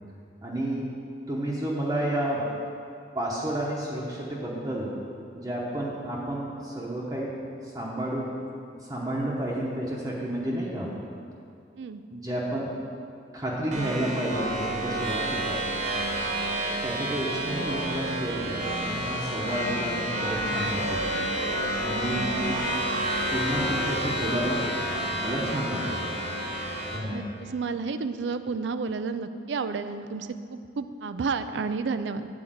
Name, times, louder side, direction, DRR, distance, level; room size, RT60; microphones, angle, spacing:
voice 1, 0.4-1.0 1.3-2.5 3.1-4.9 5.3-7.4 7.6-8.3 8.9-10.9 12.1-12.8 13.3-15.6 16.8-21.1 21.8-22.6 23.3-24.7 25.2-26.0 26.8-27.3, right 1 dB, 20° right, -5 dB, 0.9 m, -31 dB
sound 1, 13.7-27.0, right 1 dB, 40° right, 1.1 m, -29 dB
voice 2, 27.1-32.3, right 4 dB, 80° right, 11 dB, 0.4 m, -31 dB
8.8 x 4.5 x 7.4 m, 2.5 s
head